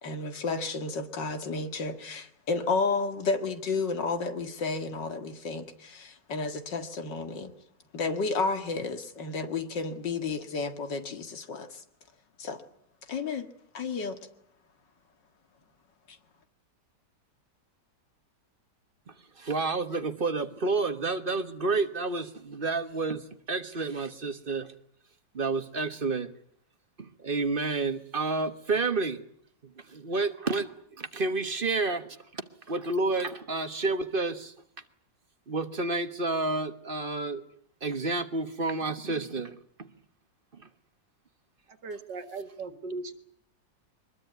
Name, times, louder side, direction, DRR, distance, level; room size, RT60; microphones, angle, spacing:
voice 1, 0.0-7.5 7.9-11.8 12.4-12.6 13.1-13.5 13.7-14.2, left 4 dB, 85° left, 8 dB, 2.6 m, -31 dB
voice 2, 19.4-23.2 23.5-24.7 25.3-26.3 27.0-29.2 29.9-30.7 31.0-32.4 32.7-34.5 35.5-37.4 37.8-39.6, right 3 dB, 35° right, 9 dB, 1.3 m, -30 dB
voice 3, 41.8-43.1, right 3 dB, 80° right, 10 dB, 2.4 m, -38 dB
23.0 x 21.0 x 9.4 m, 0.67 s
omnidirectional pair, 1.9 m